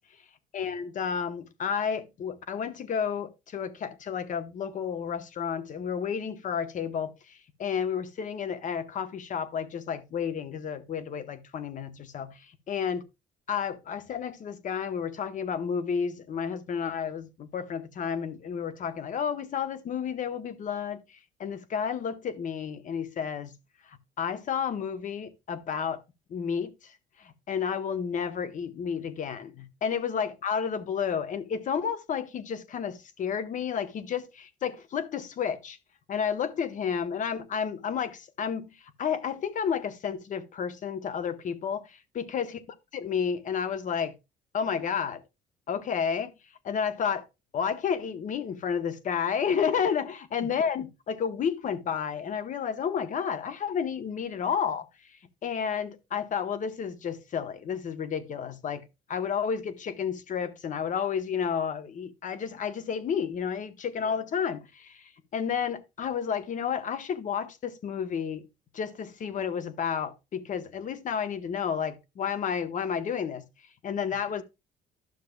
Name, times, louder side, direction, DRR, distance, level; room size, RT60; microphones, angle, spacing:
voice 1, 0.5-13.0 13.5-23.5 23.9-26.0 26.3-26.9 27.2-35.8 36.1-42.6 42.9-44.1 44.5-45.2 45.7-46.3 46.6-47.2 47.5-54.9 55.4-68.5 68.7-73.5 73.8-74.4, left 7 dB, 50° left, 1.0 m, -31 dB
12.0 x 6.5 x 2.3 m
cardioid pair, 110°, 17 cm